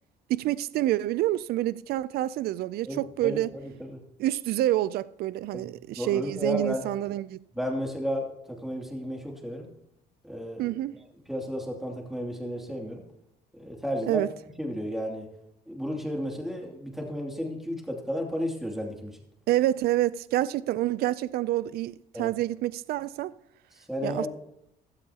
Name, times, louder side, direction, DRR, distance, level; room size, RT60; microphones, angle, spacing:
voice 1, 0.3-3.5 4.2-7.4 10.6-11.0 14.1-14.3 19.5-23.3 24.0-24.3, right 14 dB, 65° right, 0.4 m, -27 dB
voice 2, 2.8-4.0 5.5-6.9 7.5-9.7 10.2-10.7 11.3-13.0 13.5-14.2 14.6-15.3 15.7-19.1 22.1-22.3 23.7-24.3, equal, ahead, 2.6 m, -33 dB
16.0 x 13.0 x 2.9 m
cardioid pair, 110°, 17 cm